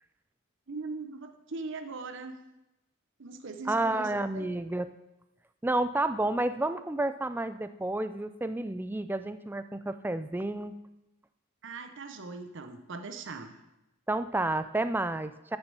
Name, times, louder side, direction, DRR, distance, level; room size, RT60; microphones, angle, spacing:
voice 1, 0.7-2.4 3.2-4.6 11.6-13.6, right 3 dB, 60° right, 6 dB, 0.8 m, -40 dB
voice 2, 3.7-4.9 5.6-10.7 14.1-15.6, right 2 dB, 10° right, 11 dB, 0.4 m, -30 dB
13.5 x 6.7 x 5.4 m, 0.94 s
head